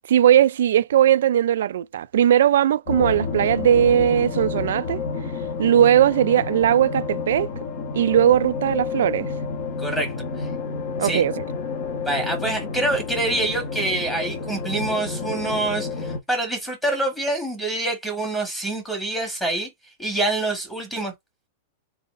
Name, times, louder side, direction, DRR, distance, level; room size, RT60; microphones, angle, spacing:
voice 1, 0.1-5.0 5.6-7.5 7.9-9.3 11.0-11.4, right 10 dB, 75° right, 0.3 m, -18 dB
sound 1, 2.9-16.2, left 5 dB, 45° left, 1.2 m, -30 dB
voice 2, 9.8-10.5 11.0-11.2 12.0-19.7 20.0-21.1, right 2 dB, 5° left, 1.4 m, -26 dB
3.9 x 3.9 x 2.5 m
supercardioid pair, 170°, 0 cm